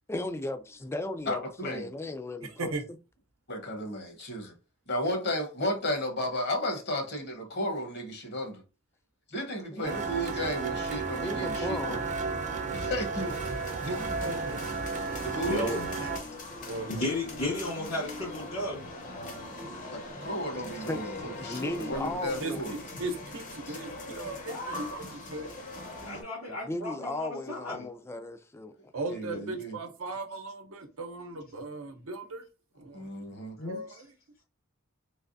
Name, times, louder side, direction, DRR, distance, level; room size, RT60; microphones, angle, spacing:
voice 1, 0.1-2.7 9.7-10.1 11.2-12.0 20.1-20.2 20.9-22.6 26.5-28.7, left 2 dB, 10° left, 0.3 m, -36 dB
voice 2, 1.3-1.9 3.5-4.5 4.9-8.6 9.3-12.0 12.7-13.2 13.8-13.9 15.2-15.7 19.9-22.7 23.7-23.8 29.1-29.8 32.9-33.6, equal, 55° left, 1.1 m, -33 dB
voice 3, 2.5-2.8 13.2-14.6 16.7-17.1 22.4-25.6 28.9-32.4 32.7-33.1 33.7-34.1, right 2 dB, 75° right, 0.8 m, -38 dB
sound 1, 9.8-16.2, right 4 dB, 35° right, 0.6 m, -33 dB
sound 2, 13.1-26.2, left 2 dB, 35° left, 0.8 m, -41 dB
voice 4, 15.5-16.1 16.9-18.8 26.0-27.9 33.6-33.8, left 1 dB, 70° left, 1.8 m, -34 dB
3.4 x 3.1 x 2.6 m
head